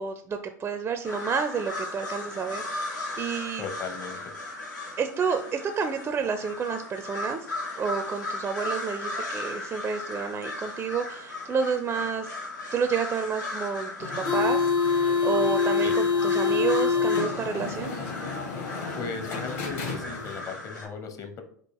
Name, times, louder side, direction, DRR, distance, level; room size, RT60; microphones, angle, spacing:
voice 1, 0.0-3.7 5.0-7.5 7.8-12.4 12.7-17.9, right 6 dB, 20° right, 8 dB, 0.4 m, -30 dB
sound 1, 1.0-20.9, left 2 dB, 90° left, 1.7 m, -37 dB
voice 2, 3.6-4.2 15.8-15.9 19.0-21.4, left 5 dB, 30° left, 6 dB, 0.8 m, -37 dB
sound 2, 14.0-20.5, left 5 dB, 55° left, 1.8 m, -26 dB
4.5 x 2.4 x 4.6 m, 0.62 s
hypercardioid pair, 100°, 10 cm